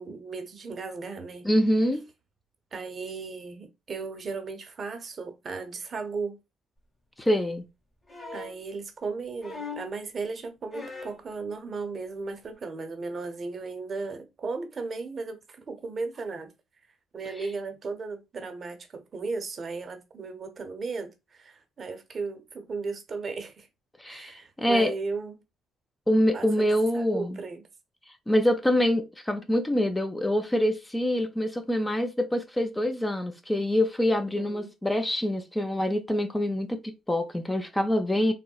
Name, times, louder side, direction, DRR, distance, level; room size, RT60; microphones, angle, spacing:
voice 1, 0.0-1.5 2.7-6.4 8.3-16.5 17.1-23.7 24.0-25.3 26.3-27.7 34.1-34.7, right 4 dB, 45° right, 0.6 m, -36 dB
voice 2, 1.4-2.0 7.2-7.6 24.0-24.9 26.1-27.4 28.3-38.3, left 1 dB, 15° left, 0.5 m, -25 dB
sound 1, 8.1-8.6 9.4-10.0 10.7-11.2 12.4-12.5, left 4 dB, 30° left, 1.7 m, -39 dB
3.6 x 2.1 x 2.3 m
cardioid pair, 80°, 0 cm